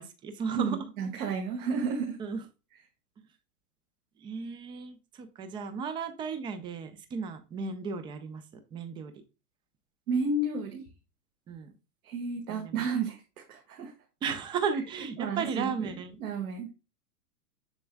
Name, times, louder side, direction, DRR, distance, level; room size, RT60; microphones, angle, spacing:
voice 1, 0.0-0.9 2.2-2.4 3.2-3.3 4.2-8.4 8.7-9.2 11.5-11.7 12.5-12.9 14.2-16.2, right 5 dB, 10° right, 9 dB, 0.5 m, -35 dB
voice 2, 0.5-2.2 10.1-10.9 12.0-13.2 13.5-13.9 15.2-15.7 16.2-16.7, right 4 dB, 65° right, 2 dB, 1.7 m, -31 dB
7.0 x 6.8 x 2.2 m, 0.30 s
hypercardioid pair, 110°, 47 cm